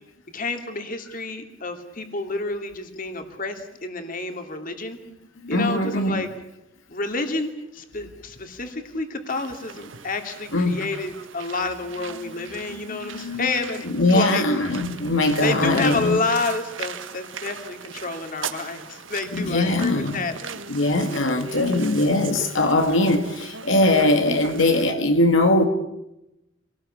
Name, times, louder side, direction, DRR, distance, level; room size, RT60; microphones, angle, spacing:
voice 1, 0.3-5.0 5.5-6.3 6.9-13.8 14.1-14.4 15.4-20.3, left 3 dB, 45° left, 5 dB, 2.8 m, -29 dB
voice 2, 5.4-6.3 8.0-8.1 10.5-10.9 12.1-12.3 12.6-16.2 19.3-20.3 20.7-25.7, left 2 dB, 85° left, 5 dB, 2.1 m, -21 dB
sound 1, 9.3-24.9, right 6 dB, 80° right, 1.5 m, -39 dB
26.5 x 19.0 x 8.7 m, 0.91 s
head